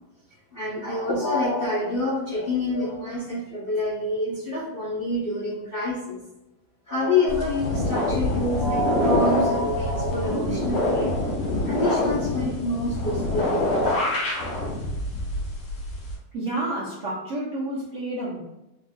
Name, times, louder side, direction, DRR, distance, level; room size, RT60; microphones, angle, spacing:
voice 1, 0.5-6.2 6.9-11.3 11.6-13.8, left 2 dB, 55° left, -9 dB, 0.6 m, -27 dB
sound 1, 7.3-16.1, left 1 dB, 85° left, 2.1 m, -26 dB
voice 2, 16.3-18.4, right 1 dB, 60° right, -8 dB, 0.8 m, -30 dB
4.3 x 2.6 x 2.4 m, 0.94 s
omnidirectional pair, 2.3 m